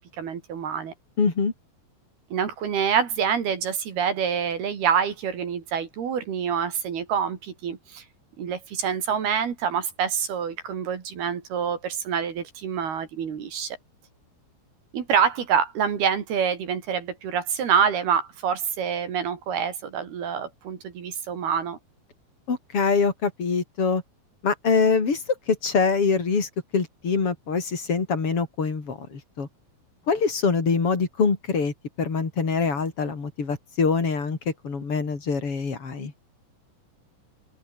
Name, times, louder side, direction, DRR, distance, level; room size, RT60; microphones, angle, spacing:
voice 1, 0.2-0.9 2.3-8.0 8.4-13.8 14.9-21.8, right 7 dB, 60° right, 4.7 m, -26 dB
voice 2, 1.2-1.5 22.5-24.0 24.4-29.5 30.1-34.4 34.6-36.1, left 5 dB, 30° left, 4.4 m, -24 dB
open air
omnidirectional pair, 5.1 m